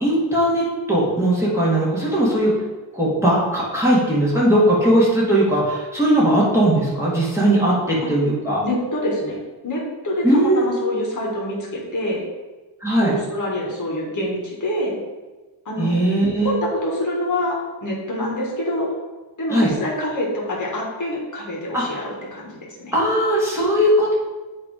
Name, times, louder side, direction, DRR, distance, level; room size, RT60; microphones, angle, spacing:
voice 1, 0.0-2.5 2.9-8.6 10.2-10.7 12.8-13.1 15.8-16.5 19.5-19.7 21.7-22.0 22.9-24.1, right 1 dB, 5° right, -7 dB, 1.9 m, -18 dB
voice 2, 8.6-12.2 13.0-15.0 15.6-16.0 16.4-18.9 19.4-22.9, left 1 dB, 40° left, -3 dB, 1.7 m, -26 dB
8.4 x 3.3 x 4.9 m, 1.2 s
wide cardioid pair, 165°, 46 cm